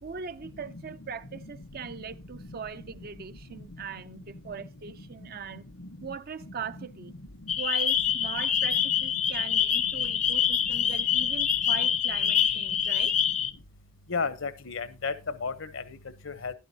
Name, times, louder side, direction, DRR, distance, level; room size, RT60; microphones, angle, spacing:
voice 1, 0.0-5.7 6.0-7.1 7.6-13.2, right 6 dB, 50° right, 0.6 m, -40 dB
sound 1, 7.5-13.5, left 8 dB, 35° left, 0.6 m, -26 dB
voice 2, 14.1-15.1 15.4-16.0 16.2-16.5, left 5 dB, 70° left, 0.9 m, -33 dB
12.0 x 11.0 x 2.8 m
head